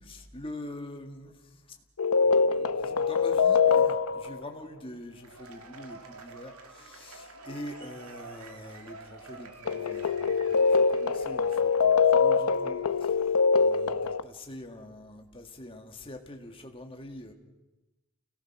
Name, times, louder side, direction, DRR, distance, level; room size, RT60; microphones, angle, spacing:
voice 1, 0.0-1.4 2.1-13.9 14.2-17.3, left 1 dB, 25° left, 4 dB, 1.9 m, -44 dB
sound 1, 2.0-4.4 9.7-14.2, left 5 dB, 80° left, 0.8 m, -24 dB
Cheering / Applause / Crowd, 5.1-11.9, right 3 dB, 80° right, 2.4 m, -48 dB
29.5 x 18.0 x 6.1 m, 1.1 s
head